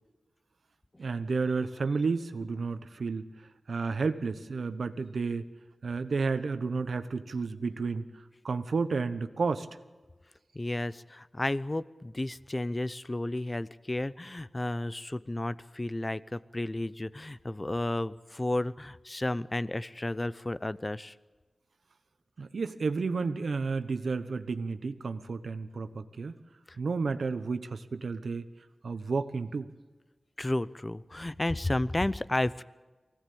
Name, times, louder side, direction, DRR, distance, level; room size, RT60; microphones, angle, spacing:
voice 1, 1.0-3.3 3.7-5.5 5.8-9.7 22.4-26.4 26.8-28.5 28.8-29.7, right 4 dB, 85° right, 10 dB, 1.1 m, -31 dB
voice 2, 10.5-21.1 30.4-32.6, left 1 dB, 25° left, 17 dB, 0.6 m, -32 dB
24.0 x 17.5 x 8.6 m, 1.3 s
wide cardioid pair, 90°, 0 cm